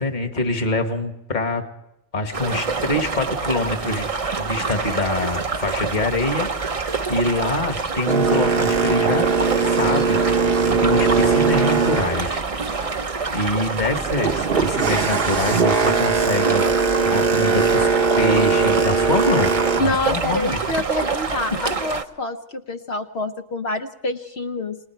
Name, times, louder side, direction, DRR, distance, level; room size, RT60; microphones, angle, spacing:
voice 1, 0.0-1.6 2.1-4.1 4.4-6.8 7.1-9.2 9.6-12.4 13.3-17.9 18.2-19.5 19.8-20.6 21.7-21.8, left 2 dB, 40° left, 5 dB, 1.8 m, -25 dB
sound 1, 2.3-22.0, right 4 dB, 35° right, 0.8 m, -26 dB
Boat Water vehicle, 8.1-13.1 13.5-19.8, right 5 dB, 50° right, 1.2 m, -20 dB
voice 2, 19.8-24.8, left 2 dB, 60° left, 6 dB, 1.3 m, -27 dB
30.0 x 19.5 x 4.6 m, 0.84 s
omnidirectional pair, 1.2 m